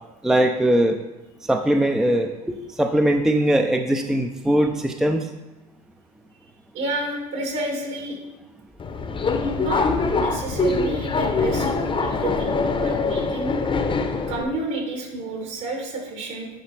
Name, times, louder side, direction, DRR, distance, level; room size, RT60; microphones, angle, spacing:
voice 1, 0.2-1.0 1.5-5.3, right 1 dB, ahead, 5 dB, 0.5 m, -20 dB
voice 2, 6.7-8.2 9.5-9.9 10.1-13.5 14.3-16.5, right 2 dB, 65° right, -1 dB, 2.8 m, -30 dB
Subway metro underground, 8.8-14.4, left 3 dB, 25° left, 0.8 m, -23 dB
9.8 x 4.9 x 3.2 m, 1.0 s
hypercardioid pair, 75°, 21 cm